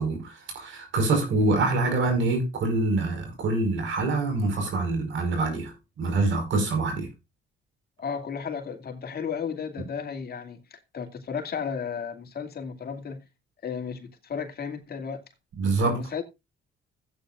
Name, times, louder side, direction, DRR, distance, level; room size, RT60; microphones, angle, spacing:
voice 1, 0.0-5.7 6.0-7.1 15.6-16.0, right 3 dB, 70° right, 5.2 m, -25 dB
voice 2, 8.0-13.3 13.6-15.2 15.6-16.2, left 6 dB, 50° left, 2.5 m, -34 dB
15.5 x 9.2 x 2.5 m
cardioid pair, 90°, 20 cm